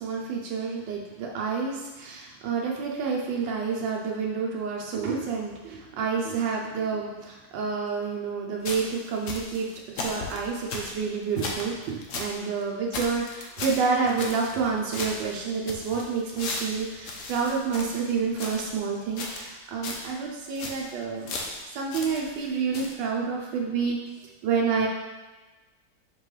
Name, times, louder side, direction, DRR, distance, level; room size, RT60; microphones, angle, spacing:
voice 1, 0.0-9.7 9.9-21.3 21.7-24.0 24.4-24.9, right 5 dB, 85° right, -1 dB, 1.4 m, -29 dB
sound 1, 8.6-12.4 12.6-12.7 12.9-14.7 14.9-18.8 19.2-19.6 19.8-20.1 20.4-20.9 21.3-22.5 22.7-22.9, left 3 dB, 55° left, 1.0 m, -36 dB
6.0 x 5.2 x 3.2 m, 1.2 s
omnidirectional pair, 1.9 m